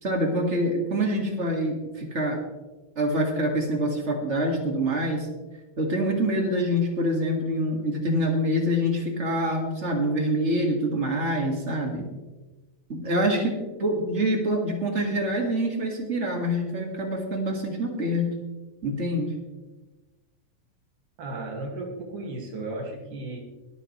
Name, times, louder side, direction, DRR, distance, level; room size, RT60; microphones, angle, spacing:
voice 1, 0.0-2.4 3.0-5.3 5.8-12.0 12.9-13.5 13.8-18.3 18.8-19.3, equal, 25° right, 1 dB, 2.1 m, -25 dB
voice 2, 21.2-23.4, right 2 dB, 90° right, 0 dB, 3.9 m, -34 dB
22.5 x 8.4 x 3.3 m, 1.1 s
omnidirectional pair, 3.4 m